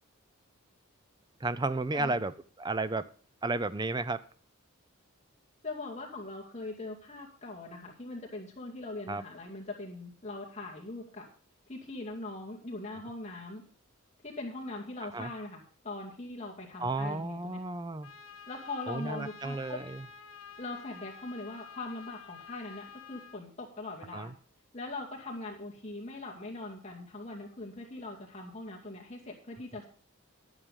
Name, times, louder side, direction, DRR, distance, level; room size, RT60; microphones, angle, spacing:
voice 1, 1.4-2.3 2.6-3.1 3.4-4.2 9.1-9.2 15.1-15.3 16.8-18.1 18.9-20.0 24.1-24.3, right 2 dB, 20° right, 14 dB, 0.5 m, -32 dB
voice 2, 5.6-11.3 11.7-13.6 14.2-17.6 18.5-19.8 20.6-24.3 24.7-29.9, left 2 dB, 30° left, -2 dB, 2.3 m, -41 dB
Trumpet, 18.0-23.4, left 7 dB, 75° left, 1.3 m, -50 dB
11.0 x 8.9 x 5.3 m, 0.43 s
head